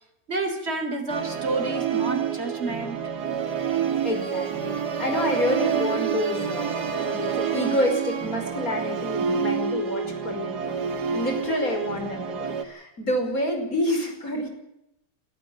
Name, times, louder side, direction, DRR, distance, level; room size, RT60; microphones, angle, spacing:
voice 1, 0.3-3.0, right 2 dB, 40° right, 5 dB, 4.1 m, -29 dB
Musical instrument, 1.1-12.6, right 7 dB, 90° right, 2.3 m, -28 dB
voice 2, 4.0-14.5, left 1 dB, 60° left, 5 dB, 5.8 m, -28 dB
23.5 x 14.0 x 8.8 m, 0.84 s
omnidirectional pair, 1.7 m